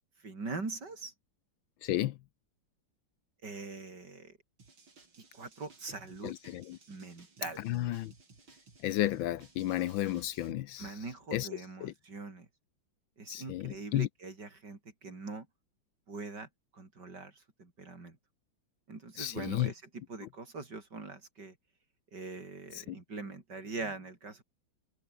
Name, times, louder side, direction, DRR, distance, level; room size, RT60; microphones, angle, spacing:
voice 1, 0.2-1.1 3.4-4.3 5.3-6.3 6.9-7.6 10.8-12.5 13.2-15.5 16.1-17.3 17.6-18.2 18.9-21.5 22.1-24.4, right 3 dB, 55° right, 4.7 m, -42 dB
voice 2, 1.8-2.2 6.2-6.8 7.6-8.1 8.8-10.9 11.3-11.9 13.3-14.1 19.2-19.7 22.7-23.0, left 14 dB, 75° left, 1.4 m, -33 dB
sound 1, 4.6-10.5, right 4 dB, 70° right, 5.2 m, -59 dB
omnidirectional pair, 2.3 m